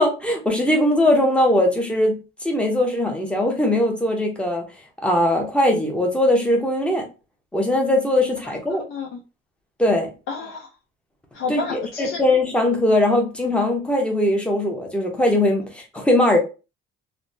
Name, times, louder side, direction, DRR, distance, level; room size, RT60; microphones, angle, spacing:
voice 1, 0.0-4.6 5.0-7.1 7.5-8.8 9.8-10.1 11.5-16.4, left 1 dB, 5° left, 0.5 m, -20 dB
voice 2, 8.4-9.2 10.3-10.7 11.3-12.2, left 5 dB, 90° left, 0.5 m, -31 dB
3.1 x 2.0 x 2.5 m
cardioid pair, 180°, 21 cm